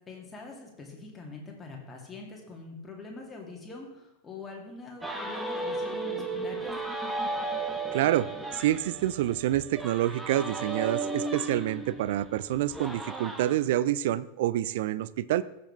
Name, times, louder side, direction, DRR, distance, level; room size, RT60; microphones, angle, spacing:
voice 1, 0.1-6.7, left 3 dB, 15° left, -1 dB, 2.4 m, -44 dB
sound 1, 5.0-13.6, right 3 dB, 5° right, 1.1 m, -35 dB
voice 2, 7.9-15.4, right 13 dB, 55° right, 18 dB, 0.4 m, -27 dB
15.5 x 6.8 x 3.4 m, 0.94 s
figure-of-eight pair, 90°, 0 cm